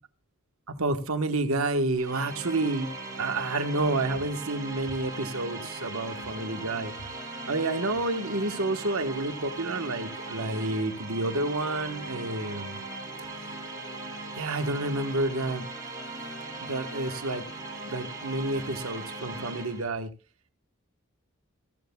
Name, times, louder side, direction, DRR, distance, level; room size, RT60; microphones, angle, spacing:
voice 1, 0.7-2.9 3.2-6.9 7.5-12.8 14.3-15.7 16.6-17.5 17.8-20.1, right 2 dB, 75° right, 1.3 m, -29 dB
sound 1, 2.0-19.9, right 2 dB, 20° right, 6.7 m, -39 dB
15.5 x 14.0 x 2.3 m
head